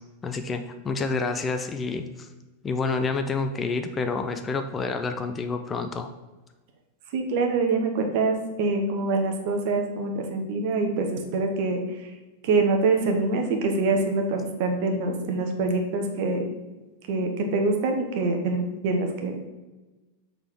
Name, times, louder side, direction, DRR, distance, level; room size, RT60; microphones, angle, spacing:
voice 1, 0.2-2.3 2.6-6.1, left 4 dB, 20° left, 7 dB, 0.5 m, -28 dB
voice 2, 7.1-11.8 12.4-16.5 17.1-19.5, right 3 dB, 50° right, 4 dB, 1.1 m, -25 dB
6.6 x 3.9 x 4.7 m, 1.2 s
figure-of-eight pair, 90°, 0 cm